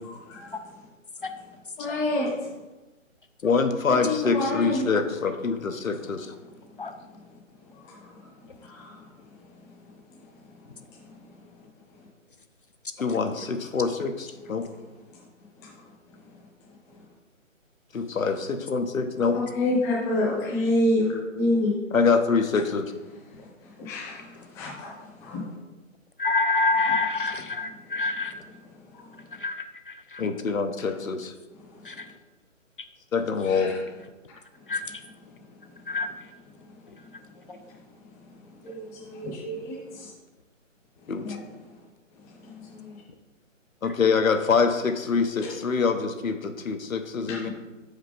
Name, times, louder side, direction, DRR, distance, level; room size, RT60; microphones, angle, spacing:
voice 1, 1.8-2.3 3.9-4.8 8.2-8.3 8.7-9.0 19.3-21.1 21.3-21.7 23.8-24.9 25.2-25.5 33.4-33.8 38.6-40.1 41.2-41.4 42.4-43.0 47.3-47.5, left 1 dB, 5° left, -6 dB, 0.8 m, -28 dB
voice 2, 3.4-6.3 13.0-14.7 17.9-19.4 21.9-22.9 30.2-31.3 33.1-33.7 41.1-41.4 43.8-47.5, left 5 dB, 80° left, 6 dB, 1.0 m, -25 dB
voice 3, 26.2-28.3 29.4-29.6 29.9-30.2 31.9-32.1 34.7-34.8 35.9-36.1, left 3 dB, 45° left, 8 dB, 0.4 m, -26 dB
6.1 x 5.1 x 4.1 m, 1.1 s
hypercardioid pair, 150°, 39 cm